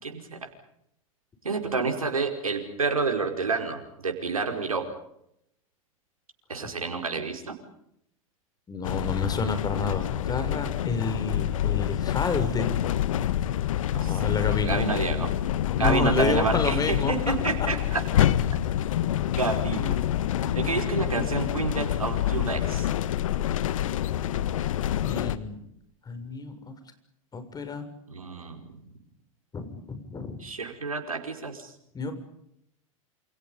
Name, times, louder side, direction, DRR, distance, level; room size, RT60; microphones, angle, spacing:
voice 1, 0.0-0.4 1.4-4.9 6.5-7.5 13.9-14.2 14.6-15.3 15.8-18.0 19.4-20.0 20.5-22.9 28.1-28.6 30.4-31.7, right 4 dB, 90° right, 4 dB, 5.0 m, -29 dB
voice 2, 8.7-12.7 13.9-14.8 15.8-17.3 17.6-17.7 25.0-25.6 26.0-26.8 27.3-27.9 29.5-30.4 31.9-32.1, left 4 dB, 20° left, 8 dB, 6.7 m, -30 dB
sound 1, 8.8-25.4, left 12 dB, 70° left, 1.7 m, -27 dB
29.0 x 28.0 x 5.4 m, 0.76 s
hypercardioid pair, 95°, 18 cm